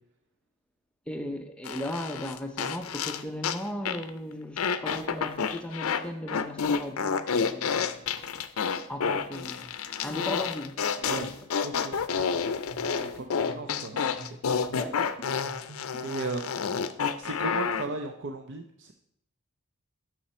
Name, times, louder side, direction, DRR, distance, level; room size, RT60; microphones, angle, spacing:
voice 1, 1.1-8.0 8.9-9.7 10.0-10.8 11.1-11.3 14.8-15.2, left 1 dB, 5° left, 0.6 m, -37 dB
sound 1, 1.6-3.6 3.8-4.1 4.6-6.0 6.3-17.8, left 6 dB, 65° left, 0.5 m, -29 dB
voice 2, 11.0-11.3 11.6-12.4 12.8-14.0 16.0-16.8 17.2-18.9, right 3 dB, 55° right, 0.5 m, -36 dB
sound 2, 12.7-16.5, right 2 dB, 75° right, 0.9 m, -48 dB
8.6 x 6.3 x 4.3 m
head